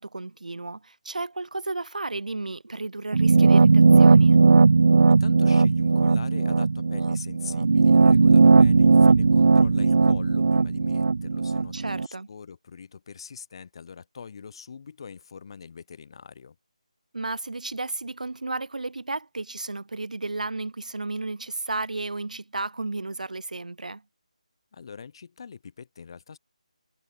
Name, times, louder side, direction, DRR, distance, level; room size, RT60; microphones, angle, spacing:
voice 1, 0.0-4.4 11.7-12.3 17.1-24.0, right 3 dB, 80° right, 2.6 m, -33 dB
sound 1, 3.1-12.1, right 4 dB, 60° right, 1.0 m, -17 dB
voice 2, 5.1-16.6 24.7-26.4, left 6 dB, 40° left, 7.8 m, -43 dB
figure-of-eight pair, 165°, 4 cm